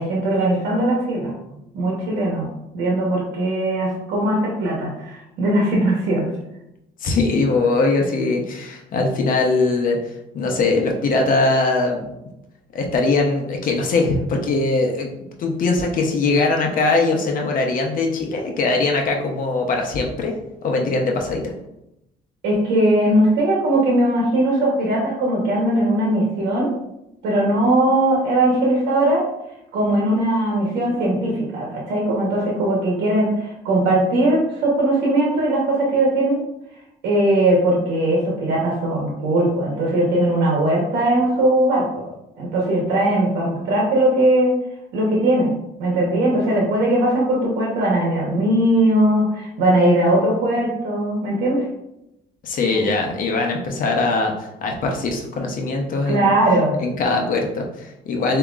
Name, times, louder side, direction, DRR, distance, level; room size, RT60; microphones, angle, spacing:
voice 1, 0.0-1.3 1.7-2.5 2.7-6.2 22.4-26.7 27.2-29.2 29.7-36.4 37.0-42.1 42.4-44.5 44.9-51.7 52.7-52.8 56.0-56.8, right 1 dB, 85° right, -2 dB, 1.1 m, -19 dB
voice 2, 7.0-10.0 10.3-12.1 12.7-15.1 15.4-20.3 20.6-21.4 52.4-56.4 56.8-58.4, left 3 dB, 55° left, 2 dB, 0.9 m, -21 dB
6.9 x 2.9 x 2.4 m, 0.87 s
cardioid pair, 110°, 17 cm